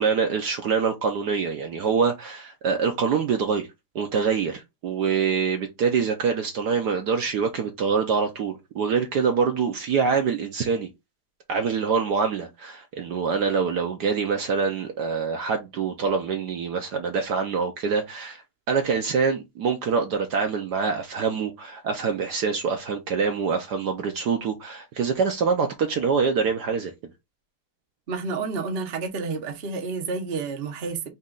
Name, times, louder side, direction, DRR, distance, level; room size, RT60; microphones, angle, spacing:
voice 1, 0.0-3.7 3.9-10.9 11.5-26.9, right 5 dB, 65° right, 1.1 m, -25 dB
voice 2, 28.1-31.0, right 4 dB, 45° right, 0.7 m, -30 dB
4.2 x 3.0 x 3.7 m
omnidirectional pair, 2.3 m